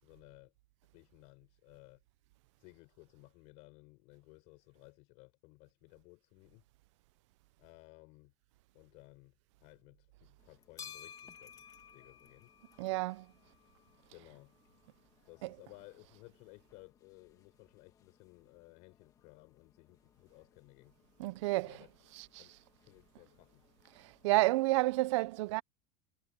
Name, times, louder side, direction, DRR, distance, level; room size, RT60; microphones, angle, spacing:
voice 1, 0.0-0.5 0.9-2.0 2.6-6.7 7.6-8.3 8.7-11.6 11.9-12.5 14.1-14.5 15.3-21.0 21.6-21.9 22.4-22.6 22.9-23.6, left 26 dB, 45° left, 5.9 m, -58 dB
sound 1, 10.4-24.3, left 7 dB, 20° left, 1.7 m, -58 dB
voice 2, 12.8-13.3 15.4-15.5 21.2-21.7 22.2-22.3 24.2-25.6, right 20 dB, 60° right, 0.6 m, -30 dB
supercardioid pair, 180°, 17 cm